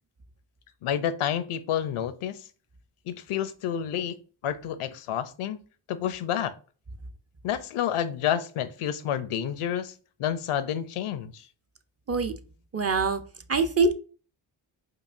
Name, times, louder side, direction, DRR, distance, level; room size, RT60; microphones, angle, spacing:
voice 1, 0.8-2.4 3.1-4.2 4.4-5.6 5.9-6.5 7.4-9.9 10.2-11.5, left 9 dB, 80° left, 13 dB, 0.6 m, -29 dB
voice 2, 12.7-13.2 13.5-13.9, right 4 dB, 30° right, 8 dB, 0.5 m, -23 dB
4.6 x 2.5 x 2.5 m, 0.38 s
cardioid pair, 50°, 50 cm